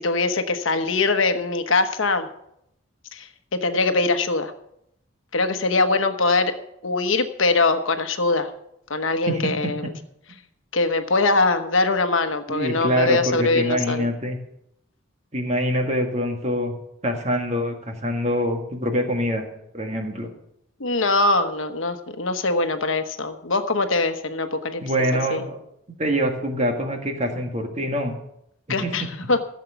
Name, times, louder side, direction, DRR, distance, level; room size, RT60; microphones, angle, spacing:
voice 1, 0.0-2.3 3.1-4.5 5.3-6.6 6.8-8.5 8.9-9.9 10.7-14.1 20.8-24.8 25.3-25.4 28.7-29.4, left 3 dB, 75° left, 7 dB, 1.1 m, -22 dB
voice 2, 9.3-9.7 12.5-14.4 15.3-16.8 17.0-19.5 19.7-20.3 24.8-25.6 26.0-28.2 28.7-28.9, equal, 35° right, 4 dB, 1.8 m, -25 dB
15.0 x 7.4 x 6.9 m, 0.79 s
head